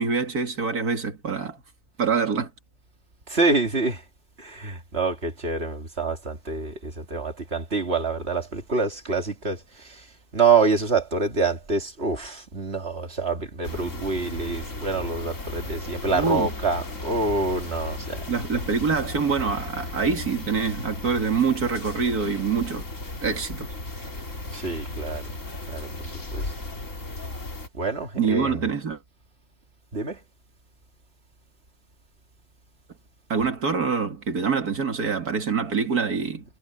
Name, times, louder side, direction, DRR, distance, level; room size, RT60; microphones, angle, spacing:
voice 1, 0.0-1.6 2.0-2.5 16.1-16.5 18.3-22.8 23.2-23.7 28.2-29.0 33.3-36.4, right 5 dB, 85° right, 2.8 m, -25 dB
voice 2, 3.3-4.0 4.4-9.6 9.8-10.0 10.3-18.2 24.5-25.2 25.7-25.9 26.3-26.4 27.8-28.6 29.9-30.2, right 4 dB, 45° right, 2.8 m, -26 dB
sound 1, 13.6-27.7, left 2 dB, 55° left, 3.6 m, -35 dB
omnidirectional pair, 1.6 m